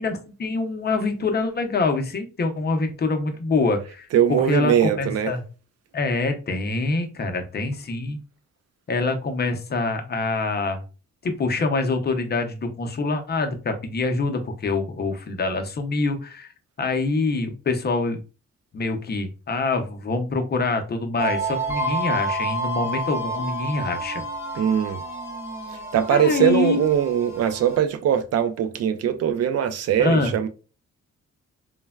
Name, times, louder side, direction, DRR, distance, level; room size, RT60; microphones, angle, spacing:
voice 1, 0.0-5.4 5.9-8.2 8.9-10.8 11.2-16.5 16.8-18.2 18.7-24.2 26.1-26.9 30.0-30.3, left 3 dB, 35° left, 0.6 m, -25 dB
voice 2, 4.1-5.3 24.5-25.0 25.9-30.5, right 9 dB, 55° right, 0.4 m, -21 dB
sound 1, 21.2-27.8, right 2 dB, 10° right, 0.6 m, -30 dB
3.2 x 2.1 x 2.2 m
cardioid pair, 100°, 30 cm